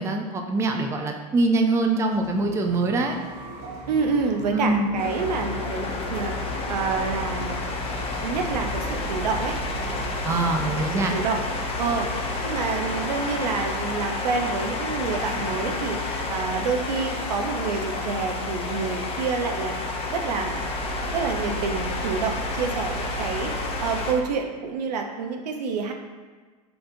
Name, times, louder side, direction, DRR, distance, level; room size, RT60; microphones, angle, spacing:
voice 1, 0.0-3.2 4.5-4.9 10.2-11.1, right 2 dB, 15° right, 3 dB, 0.4 m, -23 dB
sound 1, 2.1-15.7, right 1 dB, 50° right, 1.1 m, -40 dB
voice 2, 3.9-7.7 8.2-9.6 10.8-11.4 11.8-12.1 12.4-19.8 20.1-20.6 21.1-23.5 23.8-25.9, right 5 dB, 85° right, 3 dB, 0.6 m, -28 dB
sound 2, 5.0-24.1, left 2 dB, 30° left, 0.6 m, -30 dB
4.8 x 3.5 x 2.6 m, 1.4 s
hypercardioid pair, 105°, 21 cm